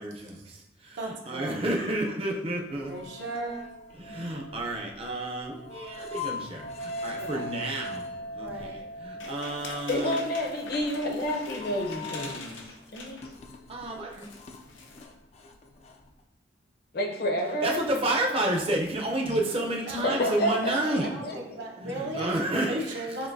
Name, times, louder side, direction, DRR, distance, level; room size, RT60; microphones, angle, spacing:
voice 1, 0.0-2.9 3.9-8.0 8.3-10.2 13.7-14.2 17.6-21.1 21.8-23.1, right 1 dB, 30° right, 0 dB, 0.6 m, -30 dB
voice 2, 1.0-1.6 2.9-3.6 7.2-7.6 8.4-8.9 19.9-20.1 20.7-22.3 22.7-23.3, right 1 dB, 75° right, 0 dB, 0.9 m, -36 dB
sound 1, 2.7-12.6 13.0-16.2, left 1 dB, 35° left, 0.3 m, -41 dB
sound 2, 9.2-13.5 13.8-13.9 14.1-15.0, left 3 dB, 90° left, 0.7 m, -43 dB
voice 3, 9.9-12.6 12.9-13.2 16.9-17.8 19.3-19.4 20.0-21.6 22.1-22.3, left 1 dB, 55° left, 2 dB, 0.7 m, -29 dB
7.3 x 2.7 x 2.6 m, 0.91 s
head